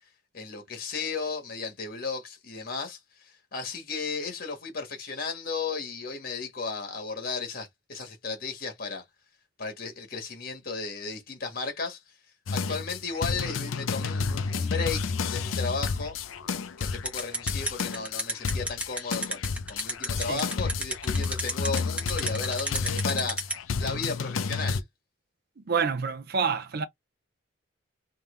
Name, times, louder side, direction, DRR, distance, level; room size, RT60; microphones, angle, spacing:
voice 1, 0.3-9.0 9.6-12.0 12.5-16.2 16.8-24.8, left 4 dB, 50° left, 1.4 m, -34 dB
sound 1, 12.5-24.8, left 5 dB, 85° left, 0.5 m, -31 dB
sound 2, 17.0-23.5, right 1 dB, 5° right, 0.9 m, -30 dB
voice 2, 25.7-26.8, right 6 dB, 50° right, 0.5 m, -27 dB
3.6 x 2.8 x 3.1 m
head